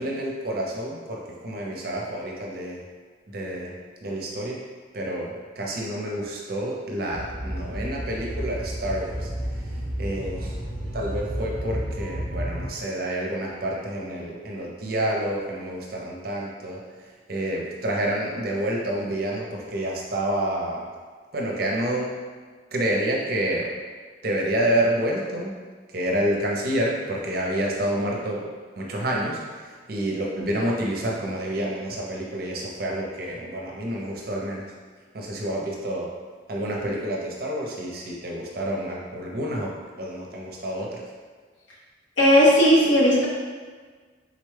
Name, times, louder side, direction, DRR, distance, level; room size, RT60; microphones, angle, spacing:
voice 1, 0.0-2.8 3.3-3.7 4.0-4.6 4.9-9.3 10.0-10.6 10.9-16.8 17.3-20.8 21.3-22.1 22.7-23.7 24.2-25.5 25.9-28.5 28.8-34.7 35.1-36.1 36.5-39.7 40.0-41.0, right 1 dB, 50° right, -2 dB, 0.6 m, -28 dB
sound 1, 7.1-12.7, equal, 55° left, 0.9 m, -31 dB
voice 2, 42.2-43.3, equal, 80° left, -6 dB, 0.9 m, -16 dB
3.8 x 2.2 x 3.2 m, 1.5 s
head